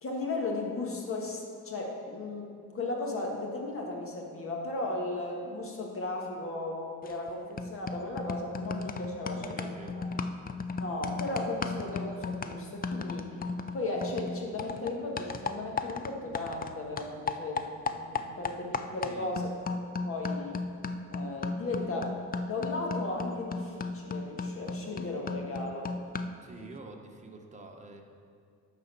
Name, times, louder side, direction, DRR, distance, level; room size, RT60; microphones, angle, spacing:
voice 1, 0.0-10.1 10.7-13.5 13.7-17.6 17.9-19.6 20.0-20.6 21.1-22.2 22.4-25.9, left 2 dB, 45° left, 0 dB, 1.8 m, -36 dB
sound 1, 7.1-7.3 7.6-16.7 17.0-26.5, left 4 dB, 30° left, 0.5 m, -36 dB
voice 2, 9.3-10.0 19.0-19.3 26.4-28.0, right 3 dB, 25° right, 2 dB, 1.2 m, -47 dB
10.5 x 4.2 x 6.8 m, 2.2 s
cardioid pair, 90°, 30 cm